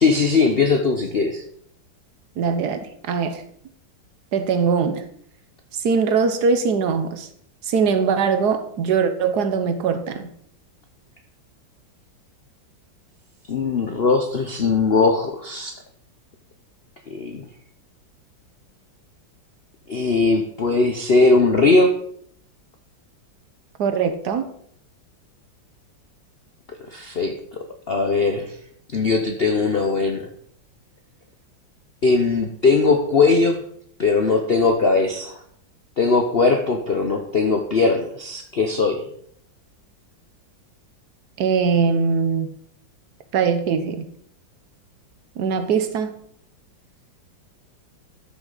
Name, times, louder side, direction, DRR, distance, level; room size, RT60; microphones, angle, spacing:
voice 1, 0.0-1.4 13.5-15.7 17.1-17.5 19.9-21.9 26.9-27.3 27.9-28.6 28.9-30.3 32.0-33.6 34.0-35.4 36.0-39.0, left 3 dB, 55° left, 4 dB, 0.6 m, -19 dB
voice 2, 2.4-3.4 4.3-5.0 5.7-7.3 7.6-10.3 23.8-24.4 41.4-42.5 43.3-44.1 45.4-46.2, right 5 dB, 60° right, 9 dB, 1.4 m, -21 dB
12.5 x 6.4 x 4.0 m, 0.66 s
omnidirectional pair, 2.1 m